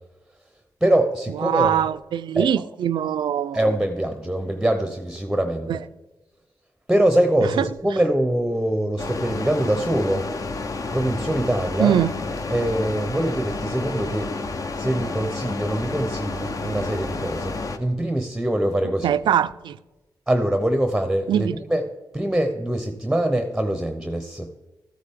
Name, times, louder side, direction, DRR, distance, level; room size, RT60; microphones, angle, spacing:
voice 1, 0.8-1.7 2.3-2.5 3.5-5.8 6.9-10.2 10.9-12.0 12.5-14.3 14.8-19.2 20.3-21.8 22.1-24.5, right 1 dB, 5° right, 0.8 m, -23 dB
voice 2, 1.3-3.6 5.7-5.8 7.4-7.7 11.8-12.1 19.0-19.8 21.3-21.6, right 9 dB, 80° right, 0.4 m, -22 dB
sound 1, 9.0-17.8, left 3 dB, 45° left, 0.8 m, -30 dB
14.0 x 8.6 x 3.6 m
cardioid pair, 80°, 8 cm